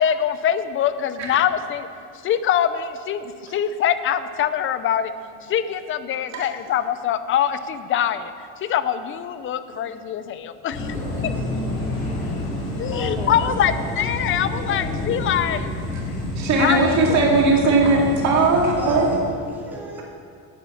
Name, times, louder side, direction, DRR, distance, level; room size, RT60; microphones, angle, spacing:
voice 1, 0.0-1.9 2.2-5.1 5.4-10.9 12.8-15.7 16.6-17.2, left 9 dB, 30° left, 12 dB, 0.5 m, -24 dB
sound 1, 10.7-19.2, left 2 dB, 80° left, 3.7 m, -28 dB
voice 2, 10.7-11.4 12.9-14.1 14.6-15.3 18.5-20.0, equal, 5° right, -5 dB, 2.7 m, -34 dB
voice 3, 16.4-19.1, right 3 dB, 45° right, -1 dB, 2.3 m, -19 dB
10.0 x 9.4 x 7.0 m, 2.3 s
cardioid pair, 150°, 39 cm